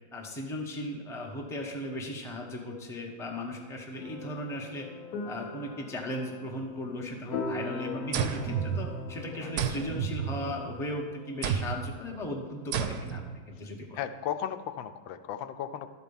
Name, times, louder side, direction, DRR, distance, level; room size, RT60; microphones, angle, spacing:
voice 1, 0.1-4.9 5.2-14.0, left 1 dB, ahead, 0 dB, 0.7 m, -37 dB
sound 1, 4.0-13.7, left 3 dB, 60° left, 1.2 m, -41 dB
Laser Pulse Rifle, 8.1-9.2 9.6-10.8 11.4-12.0 12.7-13.3, right 8 dB, 70° right, 0.9 m, -31 dB
voice 2, 13.9-15.9, left 9 dB, 90° left, 10 dB, 1.3 m, -35 dB
12.0 x 4.5 x 7.1 m, 1.4 s
omnidirectional pair, 2.0 m